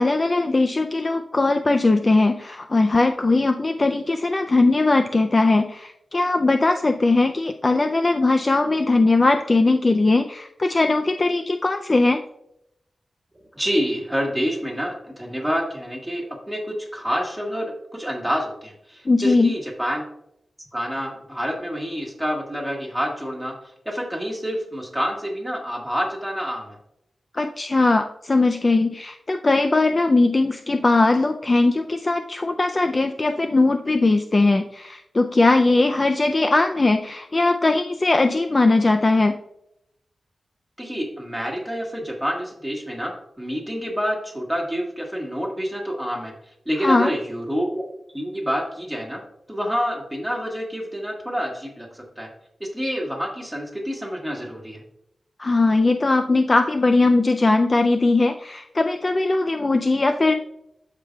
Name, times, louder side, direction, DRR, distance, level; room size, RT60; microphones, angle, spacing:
voice 1, 0.0-12.2 19.1-19.5 27.3-39.4 46.8-47.1 55.4-60.3, left 2 dB, 30° left, 6 dB, 0.3 m, -19 dB
voice 2, 13.5-20.0 20.7-23.5 23.8-26.8 40.8-46.3 46.6-47.8 48.1-49.2 49.5-52.3 52.6-54.8, equal, 5° right, 0 dB, 1.5 m, -28 dB
13.0 x 4.9 x 2.3 m, 0.79 s
wide cardioid pair, 160°, 0 cm